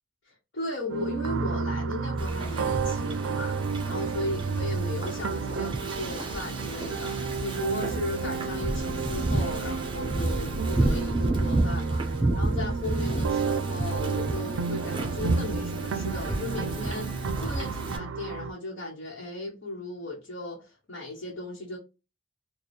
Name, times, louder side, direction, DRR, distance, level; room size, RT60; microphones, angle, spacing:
voice 1, 0.3-21.8, left 2 dB, 65° left, 1.1 m, -36 dB
sound 1, 0.9-18.5, right 5 dB, 80° right, 0.4 m, -32 dB
Wind / Ocean, 2.2-18.0, right 2 dB, 25° right, 0.6 m, -31 dB
3.3 x 2.3 x 4.1 m
head